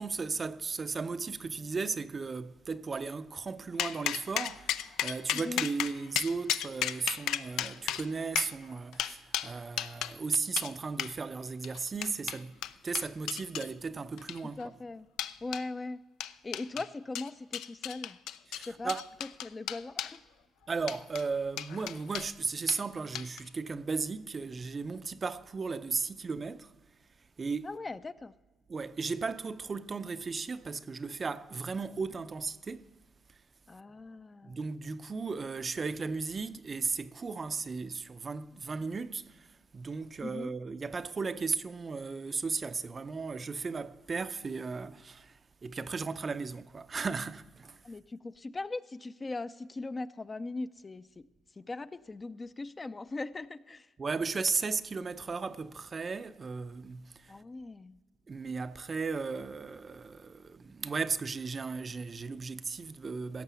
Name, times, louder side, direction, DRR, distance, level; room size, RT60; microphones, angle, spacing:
voice 1, 0.0-12.5 12.8-14.7 18.5-19.1 20.7-26.7 27.4-27.7 28.7-32.9 34.4-47.8 54.0-57.3 58.3-63.4, right 4 dB, 35° right, 0.5 m, -35 dB
sound 1, 3.8-10.1 10.6-10.7 11.0-11.1 11.6-13.7 14.2-14.6 15.2-15.6 16.2-16.9 17.1-20.2 20.8-21.2 21.6-22.3 22.7-22.8 23.1-23.5, left 11 dB, 90° left, 0.4 m, -34 dB
voice 2, 5.3-5.7 14.6-15.1 15.4-16.0 16.4-18.2 18.6-18.9 19.4-20.2 27.6-28.3 33.7-34.6 40.2-40.5 47.8-51.1 51.6-53.9 57.3-58.0, left 3 dB, 25° left, 0.4 m, -39 dB
16.5 x 6.6 x 7.0 m
cardioid pair, 90°, 0 cm